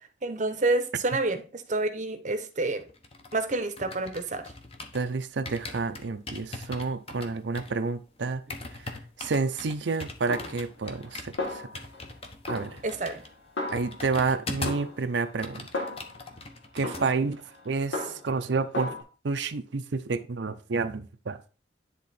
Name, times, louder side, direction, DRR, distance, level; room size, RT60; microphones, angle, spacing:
voice 1, 0.2-2.8 3.3-4.4 12.8-13.2 16.8-16.9, right 2 dB, 40° right, 0.8 m, -28 dB
sound 1, 2.8-5.1 5.5-14.9 15.2-17.1 17.3-17.6, left 2 dB, 30° left, 0.9 m, -41 dB
voice 2, 4.9-8.4 8.7-8.8 9.2-11.8 12.5-12.8 13.7-15.9 16.7-19.0 19.2-21.4, right 4 dB, 70° right, 0.6 m, -30 dB
Snare drum, 10.3-11.1 11.4-12.1 12.5-14.3 14.7-16.3 16.8-18.4 18.7-19.0, left 2 dB, 75° left, 1.6 m, -36 dB
10.0 x 3.7 x 4.2 m
head